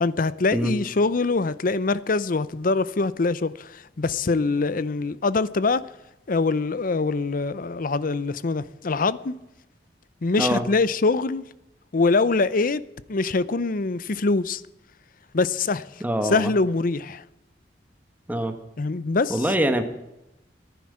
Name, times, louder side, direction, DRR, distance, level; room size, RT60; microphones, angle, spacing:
voice 1, 0.0-5.9 6.3-9.3 10.2-11.4 11.9-12.8 13.1-14.6 15.3-15.9 16.3-17.2 18.8-19.3, left 3 dB, 50° left, 0.6 m, -23 dB
voice 2, 16.0-16.5 18.3-18.5 19.3-19.8, right 1 dB, 10° right, 1.4 m, -24 dB
11.0 x 10.5 x 9.7 m
head